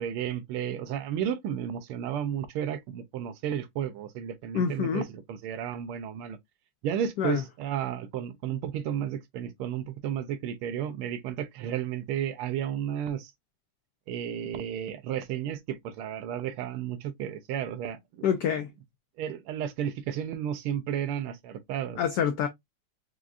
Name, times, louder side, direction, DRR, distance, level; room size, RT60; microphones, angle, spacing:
voice 1, 0.0-6.4 6.8-13.3 14.1-18.3 19.2-22.0, right 9 dB, 80° right, 1.5 m, -33 dB
voice 2, 4.5-5.0 7.2-7.4 18.2-18.7 22.0-22.5, left 8 dB, 85° left, 0.9 m, -26 dB
4.8 x 2.4 x 2.5 m
omnidirectional pair, 2.4 m